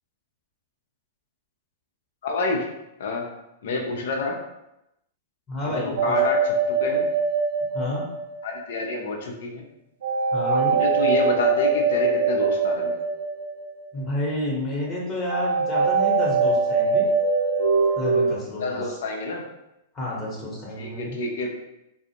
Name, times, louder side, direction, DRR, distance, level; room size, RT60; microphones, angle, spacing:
voice 1, 2.2-2.7 3.0-3.3 3.6-4.4 5.7-7.1 8.4-9.6 10.5-13.0 18.6-19.4 20.8-21.5, left 3 dB, 70° left, 1 dB, 0.5 m, -28 dB
voice 2, 5.5-6.1 7.7-8.0 10.3-10.8 13.9-17.0 18.0-19.0 19.9-21.2, left 2 dB, 30° left, -5 dB, 0.9 m, -30 dB
sound 1, 6.0-8.6 10.0-13.9 15.3-18.4, right 4 dB, 80° right, 0.4 m, -22 dB
2.4 x 2.0 x 2.8 m, 0.87 s
hypercardioid pair, 110°, 0 cm